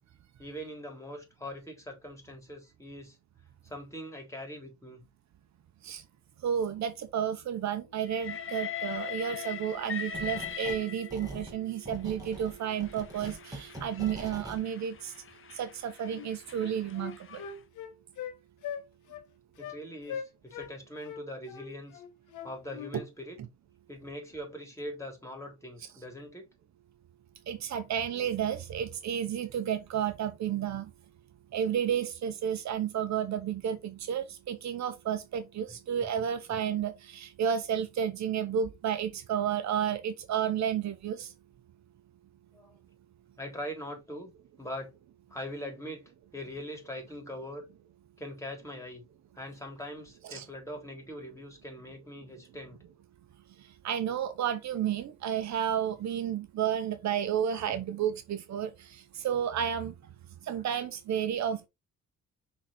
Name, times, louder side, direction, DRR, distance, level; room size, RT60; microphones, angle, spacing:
voice 1, 0.4-3.2 3.6-5.0 19.6-22.0 22.4-23.4 23.9-26.5 42.5-42.8 43.4-44.3 44.6-44.9 45.3-47.7 48.2-49.0 49.4-52.8, equal, 10° left, 3.5 m, -42 dB
voice 2, 6.4-15.1 15.5-17.4 27.5-30.9 31.5-41.3 50.2-50.5 53.8-58.9 59.2-59.9 60.5-61.7, right 9 dB, 65° right, 1.0 m, -31 dB
Train, 8.1-11.5 12.3-17.6, left 8 dB, 45° left, 1.0 m, -41 dB
sound 1, 10.1-10.8 11.1-14.6, right 1 dB, 10° right, 2.4 m, -43 dB
Wind instrument woodwind instrument, 16.1-16.3 16.6-18.3 18.6-18.8 19.1-19.2 19.6-19.8 20.1-20.7 21.0-22.9, left 8 dB, 80° left, 1.3 m, -40 dB
6.0 x 4.0 x 4.3 m
cardioid pair, 90°, 30 cm